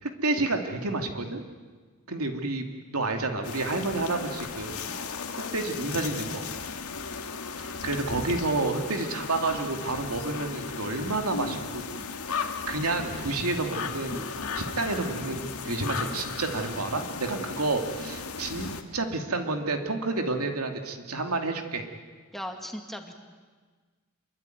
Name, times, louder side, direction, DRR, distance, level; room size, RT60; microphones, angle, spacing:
voice 1, 0.0-1.4 2.1-4.9 5.5-6.5 7.6-11.8 12.3-14.3 14.5-21.9, right 2 dB, 80° right, 4 dB, 2.7 m, -30 dB
sound 1, 3.4-18.8, left 5 dB, 80° left, 2.0 m, -36 dB
voice 2, 22.3-23.3, equal, ahead, 3 dB, 2.2 m, -38 dB
27.5 x 23.0 x 9.3 m, 1.4 s
head